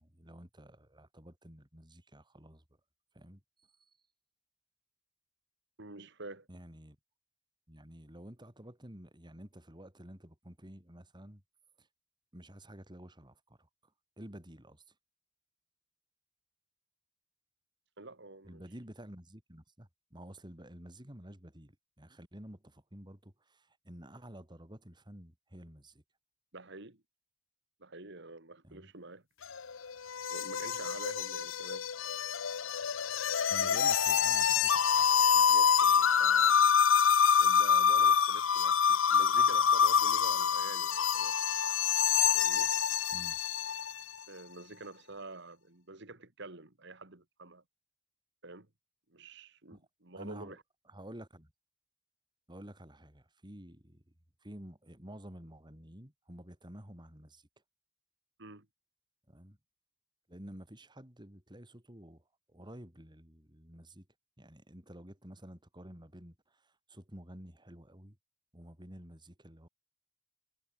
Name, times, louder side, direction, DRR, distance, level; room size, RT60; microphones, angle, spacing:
voice 1, 0.0-2.6 3.1-3.4 3.8-3.9 6.5-7.0 7.7-11.4 11.8-11.9 12.3-13.7 14.2-14.8 18.4-26.0 28.6-28.9 33.5-35.1 43.1-43.4 49.7-49.8 50.1-50.6 50.9-51.5 52.5-54.1 54.4-57.5 59.3-59.6 60.3-64.1 64.4-68.2 68.5-69.7, equal, 25° right, 3.7 m, -51 dB
voice 2, 5.8-6.5 18.0-18.6 26.5-27.0 27.8-29.2 30.3-31.9 33.6-33.9 35.3-36.7 37.4-41.3 42.3-42.7 44.3-47.6 48.4-48.7 49.1-50.6 58.4-58.7, right 2 dB, 60° right, 2.7 m, -48 dB
sound 1, 29.4-44.0, left 7 dB, 80° left, 0.9 m, -26 dB
head